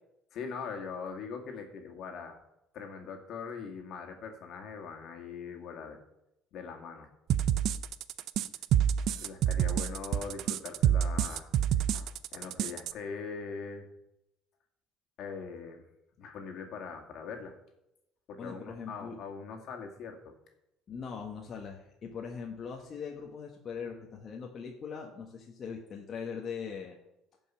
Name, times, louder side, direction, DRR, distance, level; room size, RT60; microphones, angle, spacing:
voice 1, 0.3-2.4 2.7-6.0 6.5-7.1 9.2-13.9 15.2-15.8 16.2-17.6 18.3-20.4, left 5 dB, 60° left, 3 dB, 2.2 m, -42 dB
sound 1, 7.3-12.9, right 10 dB, 65° right, 0.5 m, -27 dB
voice 2, 18.4-19.2 20.9-27.0, left 6 dB, 40° left, 0 dB, 1.4 m, -41 dB
15.0 x 5.5 x 5.7 m, 0.88 s
cardioid pair, 115°, 0 cm